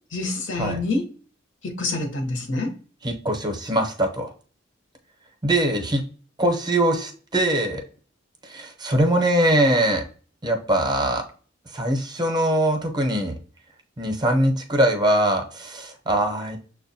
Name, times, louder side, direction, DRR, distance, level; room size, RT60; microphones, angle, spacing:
voice 1, 0.1-1.1 1.6-2.7, left 2 dB, 70° left, 0.8 m, -26 dB
voice 2, 3.0-4.3 5.4-6.0 6.4-7.8 8.4-10.0 10.4-11.2 11.7-13.3 14.0-16.6, right 1 dB, 20° right, 0.6 m, -22 dB
6.3 x 2.2 x 2.6 m
head